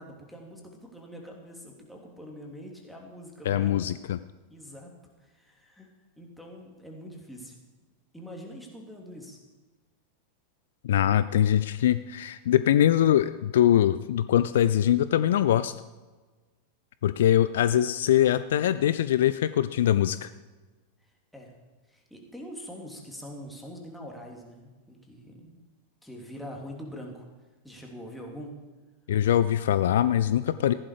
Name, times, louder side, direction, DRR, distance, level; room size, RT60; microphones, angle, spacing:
voice 1, 0.0-3.9 4.5-5.9 6.2-7.6 8.1-9.5 21.0-21.5 21.9-25.6 26.0-27.3 27.6-28.5, equal, ahead, -1 dB, 2.8 m, -44 dB
voice 2, 3.5-4.2 10.8-15.7 17.0-20.3 29.1-30.7, left 11 dB, 60° left, 14 dB, 0.4 m, -23 dB
15.0 x 11.0 x 4.9 m, 1.3 s
figure-of-eight pair, 90°, 0 cm